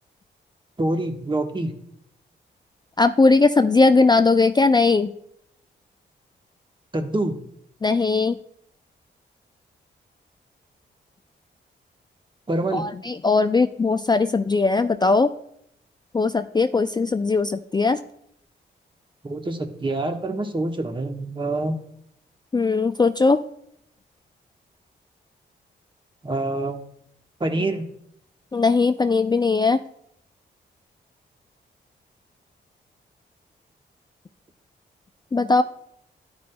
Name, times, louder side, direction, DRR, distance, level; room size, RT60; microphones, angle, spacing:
voice 1, 0.8-1.7 6.9-7.4 12.5-12.8 19.2-21.8 26.2-26.8 27.4-27.8, right 2 dB, 25° right, 5 dB, 1.1 m, -26 dB
voice 2, 3.0-5.1 7.8-8.4 12.7-15.3 16.1-18.0 22.5-23.4 28.5-29.8 35.3-35.6, left 3 dB, 20° left, 9 dB, 0.4 m, -19 dB
12.0 x 5.2 x 2.2 m, 0.73 s
supercardioid pair, 45°, 20 cm